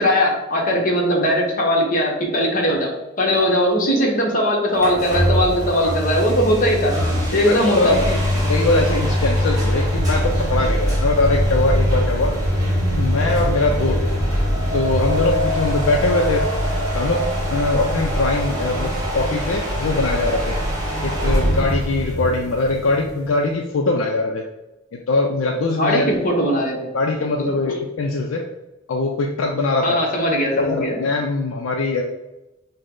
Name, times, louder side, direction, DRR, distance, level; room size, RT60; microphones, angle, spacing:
voice 1, 0.0-2.9 3.2-7.0 7.3-8.0 25.6-26.9 27.2-27.8 29.8-31.0, equal, 40° left, -1 dB, 1.0 m, -20 dB
sound 1, 4.8-23.3, equal, 20° right, 1.1 m, -22 dB
voice 2, 7.5-8.2 8.5-12.3 12.9-14.0 14.7-16.4 16.9-17.2 17.5-20.6 21.0-24.4 25.1-26.1 26.9-28.4 28.9-30.0 30.6-32.0, left 2 dB, 70° left, 2 dB, 0.4 m, -22 dB
5.3 x 2.1 x 3.7 m, 0.99 s
head